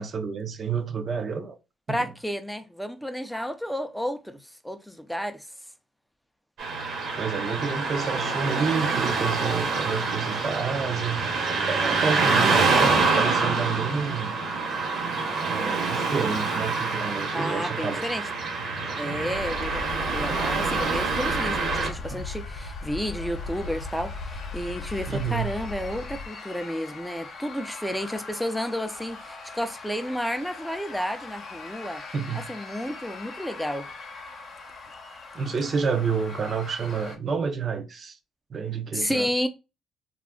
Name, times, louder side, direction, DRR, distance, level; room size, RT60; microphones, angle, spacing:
voice 1, 0.0-1.6 1.9-2.1 7.1-11.3 11.7-14.3 15.5-18.0 22.1-22.2 25.1-25.5 32.1-32.5 35.3-38.2 38.5-39.3, right 5 dB, 45° right, 0.6 m, -29 dB
voice 2, 1.9-4.4 4.6-5.5 17.3-18.3 19.0-32.0 32.3-33.9 38.9-39.5, equal, ahead, 0.5 m, -31 dB
Car passing by / Traffic noise roadway noise, 6.6-21.9, right 4 dB, 65° right, 1.1 m, -26 dB
sound 1, 19.3-26.3, left 3 dB, 90° left, 0.5 m, -37 dB
sound 2, 21.8-37.2, left 4 dB, 55° left, 0.7 m, -42 dB
2.4 x 2.1 x 3.5 m
cardioid pair, 80°, 0 cm